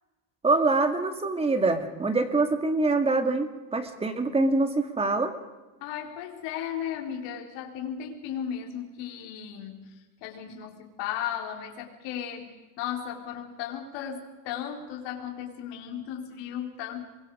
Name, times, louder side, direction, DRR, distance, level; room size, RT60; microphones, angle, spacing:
voice 1, 0.4-5.3, right 3 dB, 10° right, 7 dB, 2.1 m, -25 dB
voice 2, 5.8-17.0, left 9 dB, 55° left, 1 dB, 4.6 m, -35 dB
28.0 x 23.5 x 5.0 m, 1.2 s
supercardioid pair, 150°, 50 cm